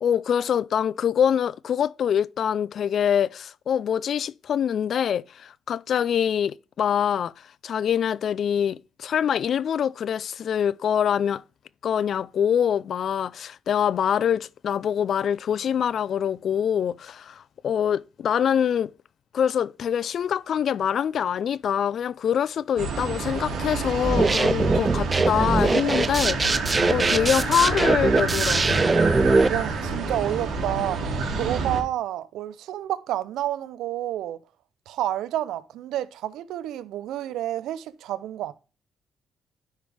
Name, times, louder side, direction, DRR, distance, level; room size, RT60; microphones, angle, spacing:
voice 1, 0.0-7.3 7.6-11.4 11.8-18.9 19.3-28.9, left 8 dB, 60° left, 0.3 m, -25 dB
sound 1, 22.8-31.8, right 4 dB, 65° right, 2.3 m, -28 dB
sound 2, 24.0-29.5, right 3 dB, 25° right, 0.4 m, -22 dB
voice 2, 29.5-34.4 34.9-38.5, right 12 dB, 85° right, 0.5 m, -29 dB
10.0 x 4.9 x 3.3 m
cardioid pair, 90°, 0 cm